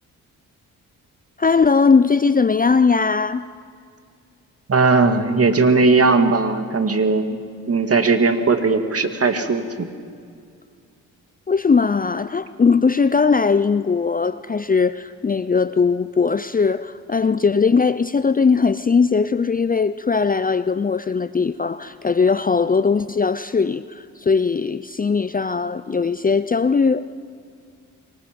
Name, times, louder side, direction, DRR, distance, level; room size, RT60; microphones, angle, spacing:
voice 1, 1.4-3.5 11.5-27.0, left 5 dB, 25° left, 14 dB, 0.6 m, -19 dB
voice 2, 4.7-7.4 7.7-9.9, right 3 dB, 40° right, 7 dB, 2.3 m, -18 dB
25.0 x 23.5 x 5.3 m, 2.2 s
cardioid pair, 65°, 36 cm